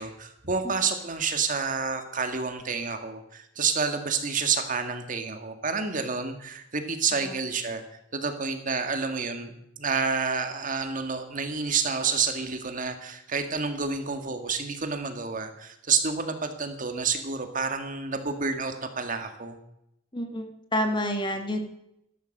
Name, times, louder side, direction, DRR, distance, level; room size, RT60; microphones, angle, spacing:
voice 1, 0.0-7.8 8.1-19.6, right 5 dB, 45° right, 7 dB, 1.8 m, -29 dB
voice 2, 20.1-21.6, equal, 25° left, 5 dB, 1.8 m, -28 dB
14.5 x 12.0 x 6.6 m, 0.79 s
head